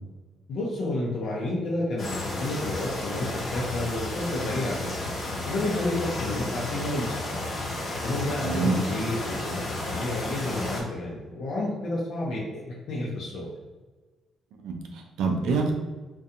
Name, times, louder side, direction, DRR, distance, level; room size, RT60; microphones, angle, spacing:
voice 1, 0.5-5.0 5.5-7.4 8.0-12.6 12.9-13.5, left 2 dB, 70° left, -4 dB, 0.5 m, -30 dB
sound 1, 2.0-10.8, left 2 dB, 45° left, 0.8 m, -33 dB
voice 2, 8.4-8.8 14.6-15.7, right 4 dB, 85° right, 2 dB, 0.3 m, -26 dB
2.6 x 2.2 x 2.5 m, 1.2 s
cardioid pair, 90°, 0 cm